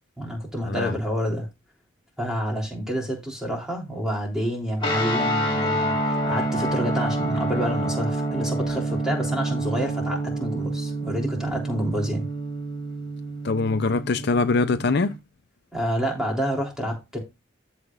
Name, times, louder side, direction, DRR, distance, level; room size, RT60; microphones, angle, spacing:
voice 1, 0.2-1.5 2.2-12.3 15.7-17.2, equal, 5° right, 3.2 m, -28 dB
sound 1, 4.8-15.1, right 1 dB, 25° left, 2.5 m, -27 dB
voice 2, 13.4-15.1, left 3 dB, 55° left, 0.5 m, -23 dB
14.0 x 5.7 x 2.4 m
head